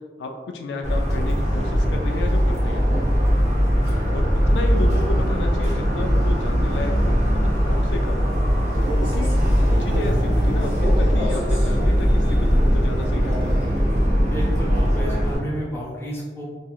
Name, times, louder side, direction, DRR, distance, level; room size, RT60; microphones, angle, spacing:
voice 1, 0.2-2.8 4.1-8.2 9.0-9.4 9.7-13.6, left 2 dB, 80° left, 3 dB, 0.3 m, -32 dB
Motor vehicle (road) / Siren, 0.8-15.4, equal, 40° right, 0.6 m, -20 dB
voice 2, 3.7-4.1 14.3-16.4, right 1 dB, 15° left, -5 dB, 0.5 m, -31 dB
Male speech man speaking, 8.6-11.8 13.1-13.8, equal, 80° right, 1.2 m, -33 dB
2.9 x 2.7 x 2.3 m, 1.5 s
head